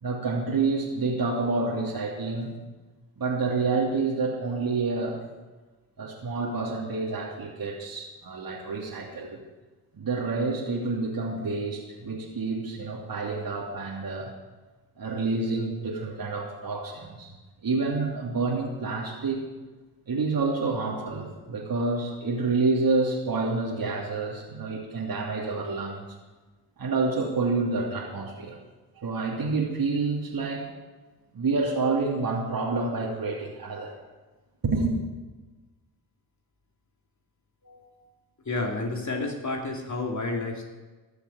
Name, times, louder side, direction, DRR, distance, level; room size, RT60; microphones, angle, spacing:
voice 1, 0.0-2.5 3.2-5.2 6.0-9.4 9.9-14.3 15.0-17.3 17.6-19.5 20.1-26.0 26.8-28.6 29.0-30.7 31.3-33.9 34.6-34.9, right 3 dB, 45° right, -3 dB, 2.9 m, -28 dB
voice 2, 37.6-38.0 38.4-40.6, left 2 dB, 35° left, 0 dB, 2.8 m, -31 dB
14.5 x 7.0 x 9.2 m, 1.2 s
hypercardioid pair, 50°, 47 cm